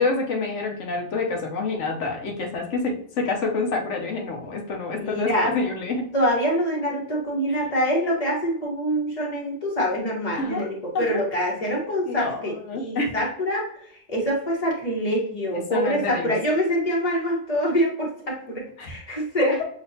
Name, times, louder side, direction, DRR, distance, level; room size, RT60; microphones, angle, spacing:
voice 1, 0.0-6.0 7.5-7.6 10.4-10.7 10.9-11.3 12.0-13.1 15.7-16.3 18.8-18.9 19.4-19.6, left 3 dB, 90° left, 2 dB, 1.1 m, -27 dB
voice 2, 5.0-5.5 6.1-13.7 14.1-19.6, equal, 30° left, -2 dB, 1.3 m, -25 dB
6.0 x 2.8 x 2.7 m, 0.64 s
omnidirectional pair, 1.2 m